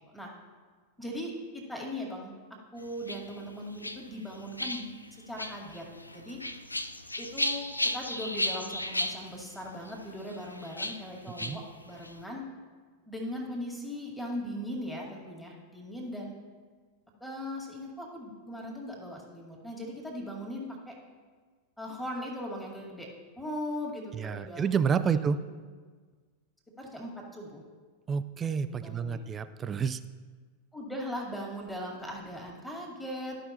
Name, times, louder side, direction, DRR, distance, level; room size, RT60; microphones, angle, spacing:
voice 1, 1.0-2.3 2.7-5.8 6.1-6.4 7.2-7.7 7.9-12.4 13.1-16.4 17.2-20.9 21.8-23.1 23.4-25.4 26.8-27.6 28.7-29.2 30.7-33.4, equal, 5° left, -2 dB, 2.0 m, -39 dB
sound 1, 2.8-12.2, left 1 dB, 85° left, 0.4 m, -36 dB
voice 2, 24.1-25.4 28.1-30.0, right 6 dB, 20° right, 12 dB, 0.3 m, -29 dB
13.5 x 5.5 x 2.9 m, 1.5 s
figure-of-eight pair, 90°, 0 cm